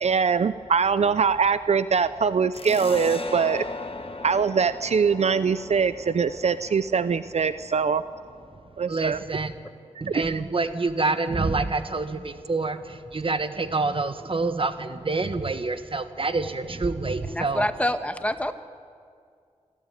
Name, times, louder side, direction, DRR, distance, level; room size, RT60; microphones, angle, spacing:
voice 1, 0.0-3.6 4.2-8.0 8.8-9.2 10.1-10.4, right 6 dB, 70° right, 14 dB, 0.5 m, -23 dB
sound 1, 2.5-9.7, left 2 dB, 55° left, 1.5 m, -39 dB
voice 2, 8.9-9.5 10.0-17.7, right 3 dB, 50° right, 10 dB, 1.3 m, -27 dB
voice 3, 17.3-18.5, left 1 dB, 10° left, 9 dB, 1.3 m, -27 dB
26.5 x 13.0 x 9.0 m, 2.2 s
wide cardioid pair, 60°, 12 cm